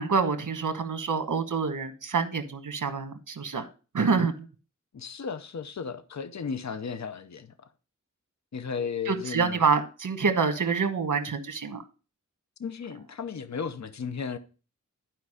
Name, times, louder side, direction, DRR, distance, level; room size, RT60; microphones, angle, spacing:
voice 1, 0.0-3.7 3.9-4.3 9.1-11.8, right 5 dB, 85° right, 1.2 m, -27 dB
voice 2, 4.9-7.7 8.5-9.6 12.6-14.4, left 6 dB, 60° left, 0.8 m, -35 dB
11.5 x 4.7 x 4.8 m
wide cardioid pair, 70°, 31 cm